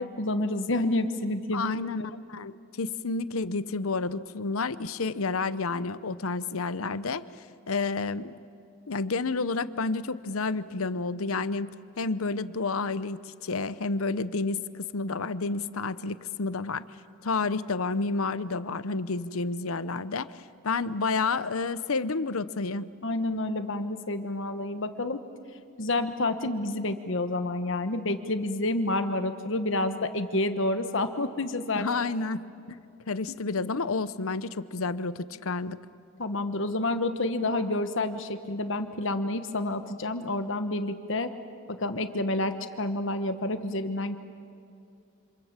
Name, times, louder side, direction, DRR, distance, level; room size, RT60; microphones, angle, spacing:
voice 1, 0.0-1.7 23.0-25.2 25.8-31.9 33.3-33.4 36.2-41.3 41.7-44.2, left 2 dB, 60° left, 9 dB, 1.2 m, -29 dB
voice 2, 1.5-2.5 2.8-7.2 7.7-8.4 8.9-16.8 17.2-22.9 31.7-35.8, left 3 dB, 80° left, 15 dB, 0.8 m, -30 dB
27.5 x 26.5 x 7.5 m, 2.6 s
head